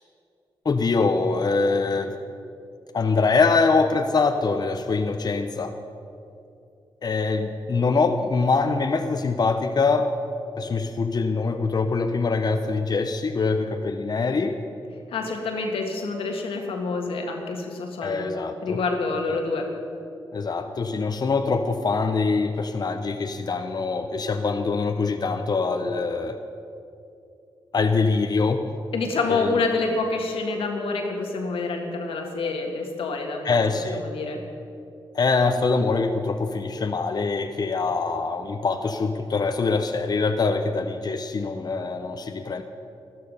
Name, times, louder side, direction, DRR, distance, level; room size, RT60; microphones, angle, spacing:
voice 1, 0.6-2.1 2.9-5.7 7.0-10.1 10.6-14.6 18.0-18.8 19.3-19.4 20.3-26.4 27.7-28.6 29.3-29.5 33.4-34.0 35.1-42.6, left 4 dB, 45° left, 6 dB, 0.8 m, -24 dB
voice 2, 15.1-18.3 18.6-19.7 28.9-33.6 33.9-34.4, left 3 dB, 85° left, 2 dB, 1.8 m, -27 dB
13.5 x 12.5 x 5.5 m, 2.6 s
cardioid pair, 60°, 9 cm